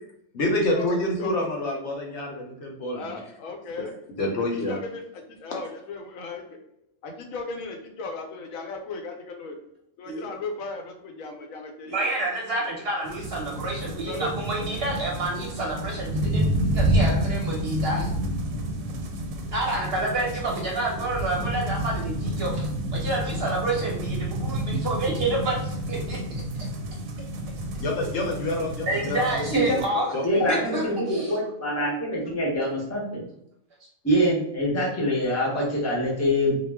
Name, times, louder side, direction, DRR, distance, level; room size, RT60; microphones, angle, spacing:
voice 1, 0.3-3.2 4.2-4.8 27.8-28.7 29.1-29.2 29.6-29.8 30.1-30.8, left 1 dB, 65° left, 0 dB, 0.9 m, -27 dB
voice 2, 2.9-3.9 4.5-6.6 7.0-9.6 10.0-12.1 14.0-14.3 16.3-16.4, left 3 dB, 85° left, 3 dB, 1.0 m, -36 dB
voice 3, 11.9-18.1 19.5-26.2 28.9-30.1 30.5-30.8, right 2 dB, 55° right, -2 dB, 0.8 m, -29 dB
sound 1, 13.0-29.9, right 1 dB, 90° right, 1.0 m, -29 dB
voice 4, 30.2-33.3 34.0-36.6, equal, 15° left, -3 dB, 0.6 m, -25 dB
2.3 x 2.0 x 3.3 m, 0.75 s
omnidirectional pair, 1.4 m